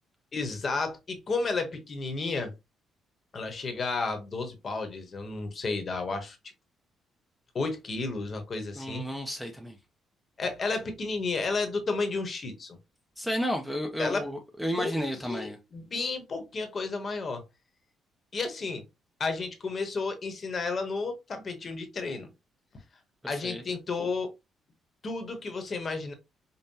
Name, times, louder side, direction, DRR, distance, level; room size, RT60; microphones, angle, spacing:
voice 1, 0.3-2.5 3.3-6.4 7.5-9.0 10.4-12.8 14.0-14.3 14.8-17.4 18.3-18.8 19.2-22.3 23.3-24.3 25.0-26.1, left 3 dB, 35° left, 1.0 m, -32 dB
voice 2, 8.8-9.8 13.2-15.6 23.2-23.6, equal, ahead, 0.6 m, -32 dB
5.3 x 2.1 x 2.7 m
cardioid pair, 135°, 0 cm